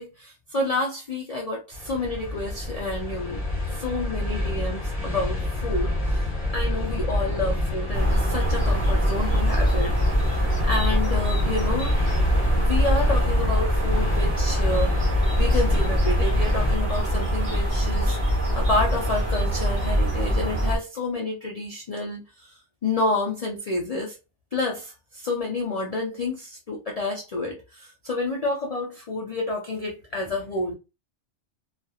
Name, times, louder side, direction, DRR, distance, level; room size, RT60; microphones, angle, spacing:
voice 1, 0.0-3.4 3.7-11.9 12.5-15.0 15.4-18.2 18.5-24.2 24.5-30.7, left 2 dB, 50° left, 0.4 m, -29 dB
sound 1, 1.7-16.8, left 1 dB, 20° left, 1.3 m, -27 dB
sound 2, 7.9-20.8, equal, 20° right, 1.2 m, -23 dB
2.7 x 2.4 x 2.3 m
omnidirectional pair, 1.2 m